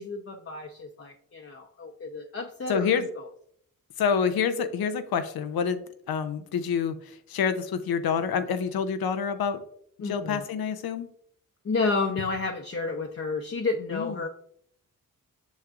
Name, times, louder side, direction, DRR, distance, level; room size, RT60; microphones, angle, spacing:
voice 1, 0.0-3.1 10.0-10.4 11.6-14.3, left 3 dB, 40° left, 2 dB, 0.8 m, -31 dB
voice 2, 2.7-3.1 4.0-9.6 10.0-11.1 13.9-14.2, left 6 dB, 80° left, 10 dB, 0.7 m, -27 dB
6.6 x 6.2 x 2.4 m, 0.65 s
supercardioid pair, 45°, 36 cm